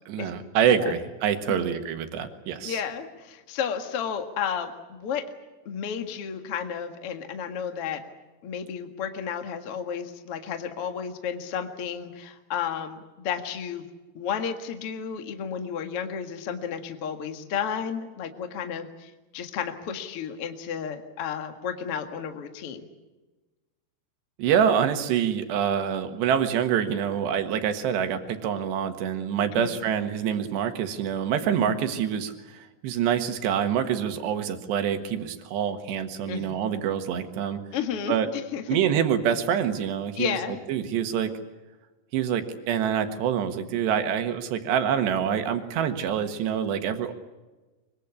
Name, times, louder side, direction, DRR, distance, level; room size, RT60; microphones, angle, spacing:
voice 1, 0.1-2.8 24.4-37.6 38.1-38.3 38.7-41.3 42.1-47.1, right 8 dB, 65° right, 7 dB, 3.4 m, -26 dB
voice 2, 2.6-5.3 5.6-8.0 8.4-13.8 14.1-22.8 29.5-29.7 31.6-31.7 36.3-36.4 37.7-38.6 40.1-40.6, left 7 dB, 75° left, 6 dB, 1.3 m, -32 dB
24.0 x 23.0 x 8.4 m, 1.2 s
omnidirectional pair, 5.8 m